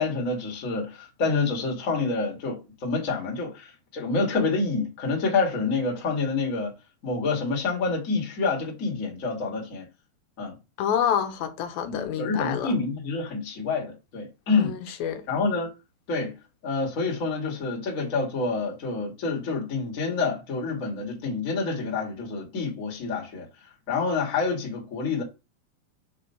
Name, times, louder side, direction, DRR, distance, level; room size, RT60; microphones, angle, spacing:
voice 1, 0.0-6.7 7.0-9.8 10.4-10.6 11.8-15.0 15.3-15.7 16.1-16.3 16.6-23.5 23.9-25.2, left 4 dB, 35° left, 1.4 m, -27 dB
voice 2, 10.8-12.8 14.6-15.2, left 8 dB, 85° left, 2.6 m, -28 dB
4.7 x 4.4 x 5.6 m
omnidirectional pair, 4.2 m